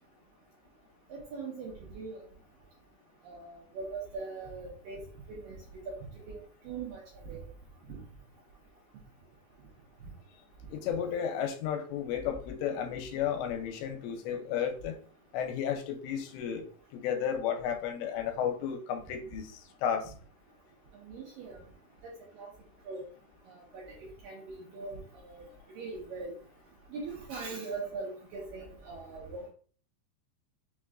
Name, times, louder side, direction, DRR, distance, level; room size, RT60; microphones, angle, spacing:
voice 1, 1.3-2.1 3.2-5.0 5.3-5.6 6.3-6.4 6.7-7.0 7.3-7.4 21.1-21.6 22.4-22.5 22.9-23.0 23.7-23.8 24.2-25.0 25.3-25.4 25.8-26.4 26.9-29.5, right 4 dB, 75° right, 2.2 m, -40 dB
voice 2, 10.7-15.0 15.3-16.6 16.9-19.5 19.8-20.1, left 8 dB, 90° left, 2.9 m, -33 dB
6.3 x 3.1 x 2.4 m
omnidirectional pair, 5.0 m